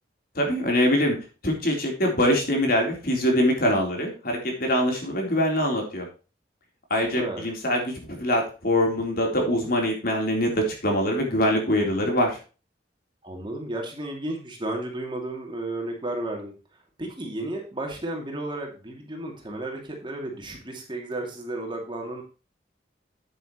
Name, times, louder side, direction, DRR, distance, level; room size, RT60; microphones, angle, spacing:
voice 1, 0.4-1.2 1.4-6.1 6.9-12.4, equal, 55° left, 1 dB, 3.7 m, -23 dB
voice 2, 7.1-7.5 13.2-16.5 17.0-22.2, right 1 dB, 25° right, 1 dB, 2.5 m, -33 dB
9.3 x 9.1 x 3.1 m, 0.34 s
head